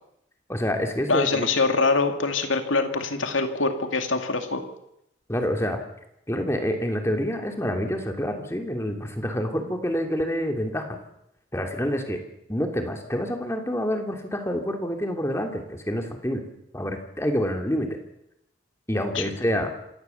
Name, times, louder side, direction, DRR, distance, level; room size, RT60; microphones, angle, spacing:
voice 1, 0.5-1.5 5.3-5.8 6.3-11.0 11.5-12.2 12.5-16.4 16.7-18.0 18.9-19.7, equal, 15° left, 4 dB, 2.7 m, -27 dB
voice 2, 1.1-4.6 19.1-19.2, left 3 dB, 90° left, 6 dB, 2.5 m, -24 dB
27.0 x 17.5 x 7.1 m, 0.80 s
head